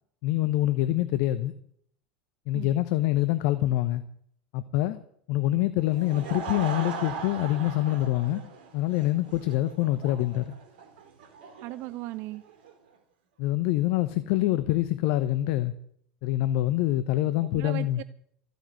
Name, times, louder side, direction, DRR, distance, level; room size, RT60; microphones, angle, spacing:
voice 1, 0.2-1.5 2.5-4.0 4.5-5.0 5.3-8.4 8.7-10.5 13.4-15.7 16.2-18.0, left 15 dB, 60° left, 0.9 m, -25 dB
Laughter / Crowd, 5.8-12.7, right 5 dB, 65° right, 2.3 m, -39 dB
voice 2, 11.6-12.4 17.4-18.0, right 18 dB, 50° right, 0.5 m, -37 dB
14.5 x 9.2 x 7.8 m
hypercardioid pair, 80°, 5 cm